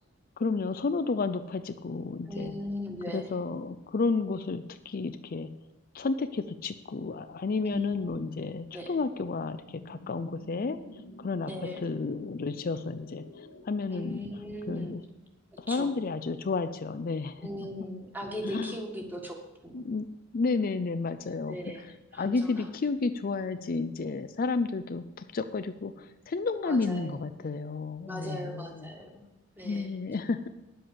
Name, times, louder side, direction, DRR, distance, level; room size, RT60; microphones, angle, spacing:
voice 1, 0.4-2.5 3.1-5.5 5.9-9.6 9.9-10.8 11.2-11.5 11.8-13.2 13.6-14.2 14.7-15.0 15.6-17.5 18.4-18.7 19.7-20.1 20.3-21.6 22.1-25.0 25.3-28.9 29.6-30.5, left 4 dB, 45° left, 10 dB, 0.4 m, -31 dB
voice 2, 2.3-3.3 7.6-8.2 8.7-9.0 11.4-11.9 13.9-15.0 15.5-16.0 17.4-19.8 21.5-22.7 26.6-27.2 28.1-29.2 29.6-30.0, equal, 10° right, 2 dB, 1.6 m, -39 dB
sound 1, 8.3-13.7, left 1 dB, 90° left, 1.5 m, -50 dB
10.0 x 7.8 x 6.8 m, 1.0 s
head